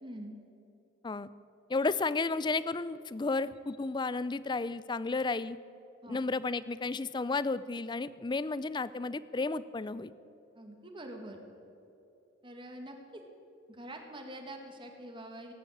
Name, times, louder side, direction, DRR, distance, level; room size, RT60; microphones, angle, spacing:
voice 1, 0.0-0.4 6.0-6.2 10.6-11.4 12.4-13.2 13.7-15.5, right 1 dB, 25° right, 3 dB, 1.8 m, -45 dB
voice 2, 1.7-5.6 6.1-10.1, left 3 dB, 25° left, 17 dB, 0.4 m, -32 dB
18.0 x 9.0 x 8.7 m, 2.9 s
head